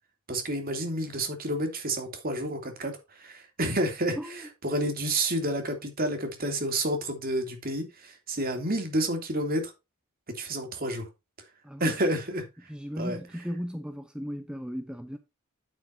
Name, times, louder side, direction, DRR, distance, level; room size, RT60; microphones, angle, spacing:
voice 1, 0.3-4.2 4.6-9.7 10.3-11.1 11.8-12.4 13.0-13.2, right 1 dB, 45° right, 3.0 m, -29 dB
voice 2, 4.2-4.5 11.6-12.0 12.7-15.2, equal, 5° right, 0.7 m, -36 dB
9.1 x 8.4 x 2.8 m
head